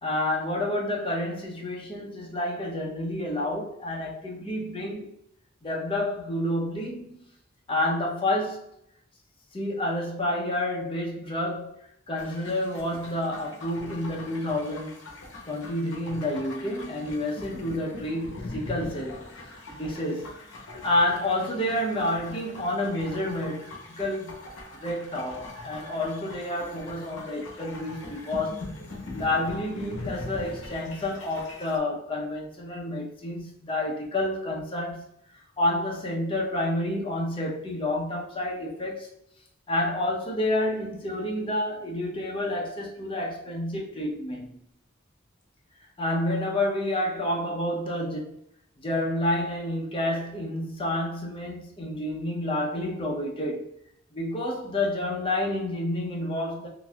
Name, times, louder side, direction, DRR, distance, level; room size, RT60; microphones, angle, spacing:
voice 1, 0.0-5.1 5.6-7.2 7.7-8.7 9.5-11.8 12.1-14.9 15.5-19.3 19.8-20.3 20.6-24.5 24.8-28.7 29.1-35.1 35.6-39.1 39.7-44.7 46.0-48.4 48.8-53.7 54.1-56.7, left 1 dB, 25° left, 0.8 m, -29 dB
sound 1, 12.2-31.8, left 2 dB, 70° left, 0.8 m, -42 dB
3.9 x 2.7 x 2.3 m
head